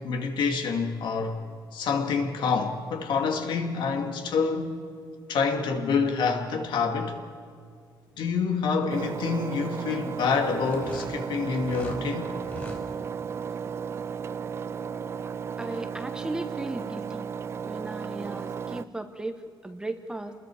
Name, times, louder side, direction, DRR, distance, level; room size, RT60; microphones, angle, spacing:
voice 1, 0.0-1.4 1.7-4.8 5.3-7.2 8.2-12.3, left 5 dB, 75° left, 4 dB, 2.5 m, -27 dB
Engine, 8.9-18.8, right 6 dB, 30° right, 0.5 m, -34 dB
sound 1, 10.7-12.0 12.4-12.8, left 2 dB, 20° left, 4.4 m, -41 dB
voice 2, 15.6-17.3 17.6-20.3, right 2 dB, 10° right, 7 dB, 1.1 m, -36 dB
29.0 x 21.5 x 5.0 m, 2.2 s
cardioid pair, 175°, 8 cm